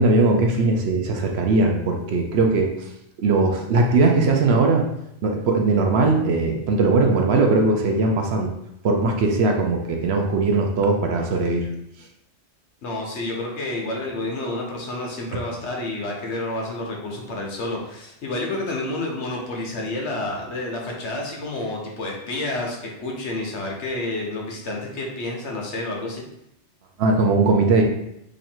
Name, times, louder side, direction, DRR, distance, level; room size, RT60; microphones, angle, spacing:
voice 1, 0.0-2.7 3.2-4.9 5.2-8.5 8.8-11.6 27.0-27.8, right 3 dB, 65° right, 2 dB, 0.8 m, -19 dB
voice 2, 12.8-26.2, left 2 dB, 65° left, -1 dB, 1.1 m, -29 dB
3.1 x 2.5 x 4.3 m, 0.80 s
omnidirectional pair, 1.2 m